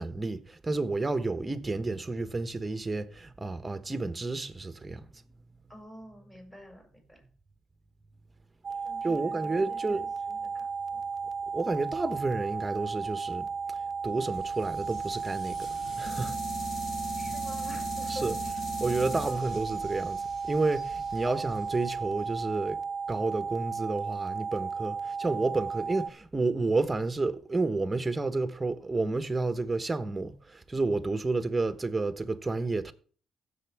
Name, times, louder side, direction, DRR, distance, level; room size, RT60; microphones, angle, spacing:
voice 1, 0.0-5.1 9.0-10.1 11.5-13.5 14.0-15.7 16.0-16.4 18.1-18.4 18.8-22.8 23.1-32.9, right 3 dB, 20° right, 1.1 m, -30 dB
voice 2, 5.7-7.2 8.8-11.0 17.2-18.6 19.2-19.6, equal, 15° left, 6.5 m, -48 dB
sound 1, 8.6-26.1, right 5 dB, 50° right, 0.5 m, -34 dB
sound 2, 14.3-22.4, left 1 dB, 50° left, 6.4 m, -41 dB
16.0 x 7.1 x 3.5 m
cardioid pair, 90°, 0 cm